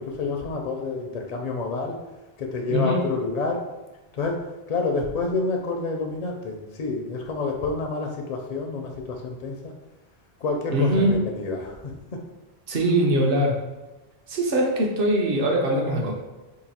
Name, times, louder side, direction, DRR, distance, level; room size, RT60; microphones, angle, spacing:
voice 1, 0.0-2.0 2.4-3.6 4.1-4.4 4.7-9.7 10.4-12.2, left 3 dB, 55° left, 2 dB, 0.5 m, -28 dB
voice 2, 2.7-3.0 10.7-11.2 12.7-13.6 14.3-16.1, right 1 dB, 65° right, 1 dB, 0.8 m, -22 dB
2.9 x 2.4 x 4.1 m, 1.1 s
omnidirectional pair, 1.0 m